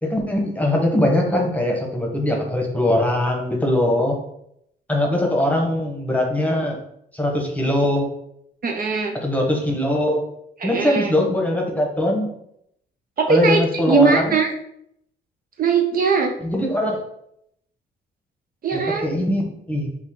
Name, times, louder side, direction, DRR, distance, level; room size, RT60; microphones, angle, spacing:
voice 1, 0.0-4.2 4.9-6.8 7.1-8.1 9.1-10.3 10.6-12.3 13.3-14.4 16.4-17.0 18.7-19.9, left 1 dB, 5° left, 0 dB, 1.0 m, -21 dB
voice 2, 8.6-9.2 10.6-11.1 13.2-14.5 15.6-16.3 18.6-19.1, right 5 dB, 45° right, 3 dB, 0.5 m, -20 dB
4.2 x 2.4 x 3.6 m, 0.75 s
cardioid pair, 90°, 20 cm